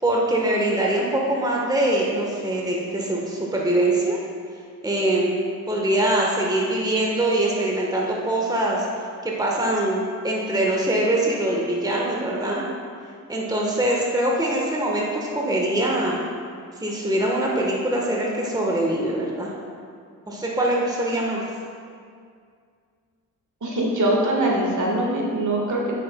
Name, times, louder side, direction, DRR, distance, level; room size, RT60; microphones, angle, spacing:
voice 1, 0.0-4.2 4.8-5.4 5.7-8.8 9.2-12.6 13.3-16.2 16.8-19.5 20.3-21.4, right 1 dB, 10° right, -2 dB, 1.3 m, -23 dB
voice 2, 23.6-26.0, right 1 dB, 50° right, -2 dB, 1.6 m, -22 dB
8.6 x 6.3 x 2.3 m, 2.2 s
supercardioid pair, 40°, 39 cm